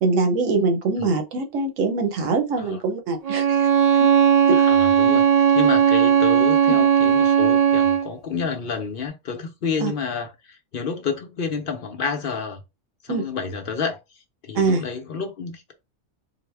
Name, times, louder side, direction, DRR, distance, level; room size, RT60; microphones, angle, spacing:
voice 1, 0.0-3.7 4.5-4.6 9.8-9.9 13.1-13.2 14.5-14.8, right 3 dB, 90° right, 1.2 m, -23 dB
Bowed string instrument, 3.2-8.1, right 8 dB, 70° right, 0.3 m, -17 dB
voice 2, 4.5-12.6 13.0-14.0 14.4-15.7, left 5 dB, 55° left, 0.8 m, -29 dB
4.0 x 2.1 x 3.3 m
omnidirectional pair, 1.3 m